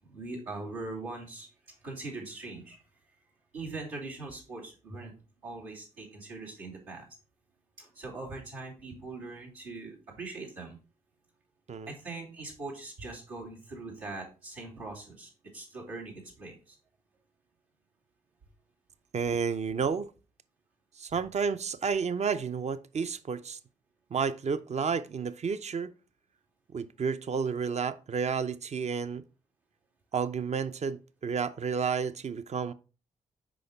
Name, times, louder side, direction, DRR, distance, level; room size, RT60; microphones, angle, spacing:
voice 1, 0.1-1.5 1.8-2.8 3.5-5.1 5.4-7.1 7.8-10.8 11.9-16.8, right 3 dB, 85° right, 2.6 m, -41 dB
voice 2, 19.1-20.1 21.0-23.6 24.1-25.9 26.7-29.2 30.1-32.7, right 6 dB, 40° right, 0.6 m, -31 dB
6.3 x 5.0 x 4.3 m
hypercardioid pair, 40°, 17 cm